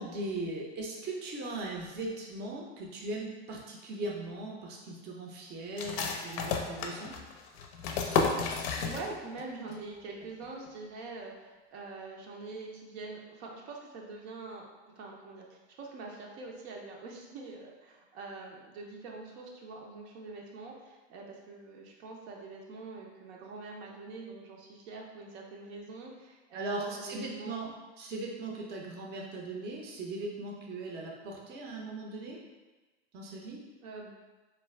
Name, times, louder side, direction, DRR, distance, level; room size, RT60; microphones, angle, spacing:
voice 1, 0.0-7.2 26.5-32.4 33.1-33.6, right 2 dB, 30° right, -1 dB, 0.5 m, -39 dB
sound 1, 5.8-9.4 9.7-9.8 10.2-10.7, left 5 dB, 60° left, 0.5 m, -32 dB
voice 2, 8.3-27.6 33.8-34.1, right 3 dB, 70° right, -1 dB, 0.6 m, -44 dB
2.4 x 2.2 x 3.1 m, 1.2 s
hypercardioid pair, 105°, 34 cm